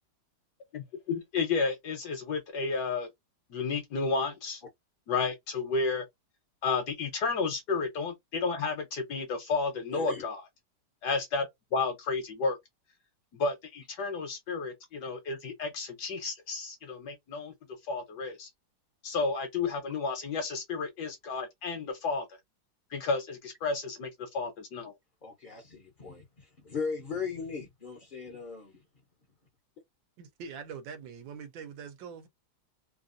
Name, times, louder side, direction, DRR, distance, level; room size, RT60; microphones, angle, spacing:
voice 1, 0.7-3.1 3.5-4.6 5.1-6.0 6.6-10.4 11.0-12.6 13.3-17.5 17.9-18.5 19.0-22.3 22.9-24.9, left 4 dB, 65° left, 1.3 m, -32 dB
voice 2, 9.9-10.2 25.2-28.8, left 5 dB, 45° left, 0.7 m, -38 dB
voice 3, 30.2-32.3, right 6 dB, 85° right, 1.5 m, -43 dB
3.4 x 2.4 x 2.5 m
omnidirectional pair, 2.0 m